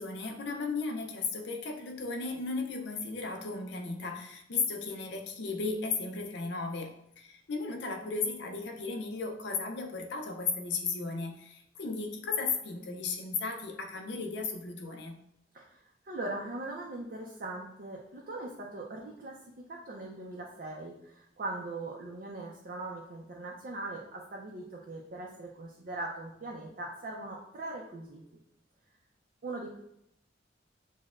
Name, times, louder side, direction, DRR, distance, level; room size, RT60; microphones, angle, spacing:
voice 1, 0.0-15.2, left 4 dB, 65° left, 3 dB, 0.6 m, -35 dB
voice 2, 15.5-19.4 19.7-28.2 29.4-29.8, right 2 dB, 50° right, -2 dB, 0.5 m, -40 dB
6.2 x 2.2 x 2.4 m, 0.78 s
head